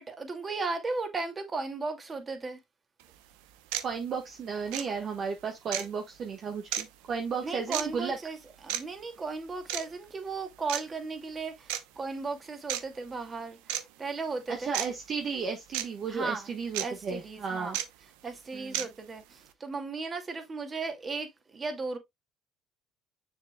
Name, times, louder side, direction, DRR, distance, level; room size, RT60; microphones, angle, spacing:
voice 1, 0.0-2.6 4.8-4.9 7.4-8.4 8.6-14.7 16.1-16.5 16.8-17.8 18.2-22.0, right 3 dB, 30° right, 2.3 m, -36 dB
sound 1, 3.0-3.1 3.7-3.9 4.7-4.9 5.7-5.9 6.7-6.8 7.7-7.9 8.7-8.8 9.7-9.9 10.7-10.8 11.7-11.8 12.7-12.8 13.7-13.8 14.7-14.9 15.7-15.9 16.7-16.9 17.7-17.9 18.7-18.9, right 12 dB, 85° right, 0.8 m, -31 dB
voice 2, 3.8-8.2 14.5-17.8 18.5-18.7, right 5 dB, 50° right, 1.4 m, -34 dB
7.1 x 6.5 x 2.3 m
supercardioid pair, 75°, 0 cm